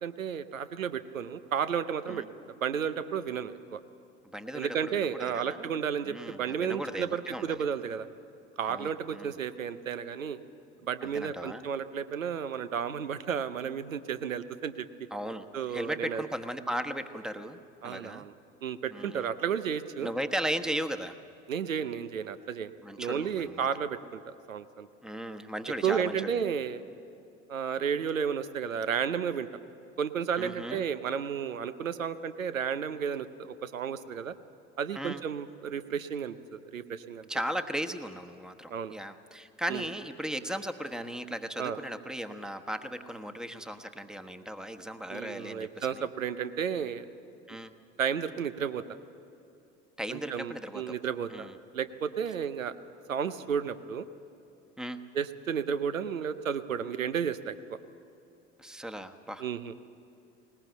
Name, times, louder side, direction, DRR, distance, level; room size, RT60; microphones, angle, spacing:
voice 1, 0.0-2.2 2.6-3.8 4.5-8.1 8.6-10.4 10.8-14.9 15.5-16.3 17.8-18.3 18.6-20.1 21.5-22.7 23.0-24.2 24.5-24.9 25.8-26.8 27.5-29.5 30.0-34.3 34.8-37.3 38.7-38.9 39.7-39.9 41.6-41.8 45.1-47.1 48.0-48.8 50.1-51.5 51.7-52.7 53.1-54.1 55.1-57.6 59.4-59.7, right 7 dB, 85° right, 13 dB, 0.7 m, -32 dB
voice 2, 4.3-5.7 6.0-7.6 8.7-9.4 11.0-11.6 15.1-18.3 18.9-19.3 20.0-21.1 22.8-23.7 25.0-26.4 30.4-30.8 34.9-35.2 37.3-46.0 47.5-47.7 50.0-50.9 51.3-51.5 54.8-55.0 58.6-59.4, equal, ahead, 8 dB, 1.1 m, -37 dB
20.5 x 19.5 x 8.1 m, 2.7 s
figure-of-eight pair, 65°, 39 cm